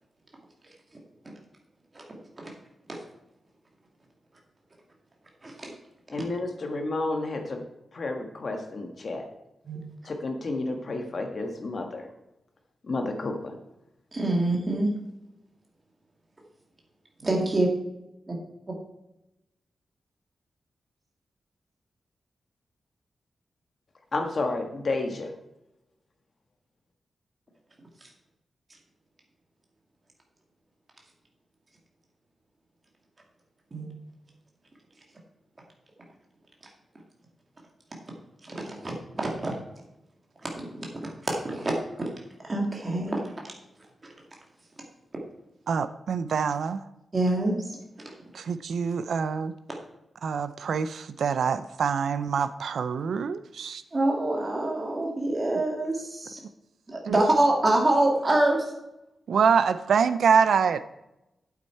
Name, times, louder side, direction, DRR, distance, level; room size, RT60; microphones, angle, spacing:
voice 1, 6.1-7.6 7.9-9.3 10.0-12.1 12.8-13.5 24.1-25.3, left 2 dB, 40° left, 4 dB, 1.5 m, -31 dB
voice 2, 14.1-14.9 17.2-17.7 18.3-18.4 33.7-33.9 38.5-39.5 40.4-40.7 41.0-41.7 42.4-43.2 47.1-47.8 48.1-48.2 53.9-56.4 56.9-58.7, right 2 dB, 25° right, -1 dB, 2.2 m, -26 dB
voice 3, 45.7-46.8 48.3-49.5 50.2-53.8 57.0-57.2 59.3-60.8, right 6 dB, 75° right, 12 dB, 0.5 m, -25 dB
8.7 x 8.3 x 4.5 m, 0.90 s
wide cardioid pair, 175°, 0 cm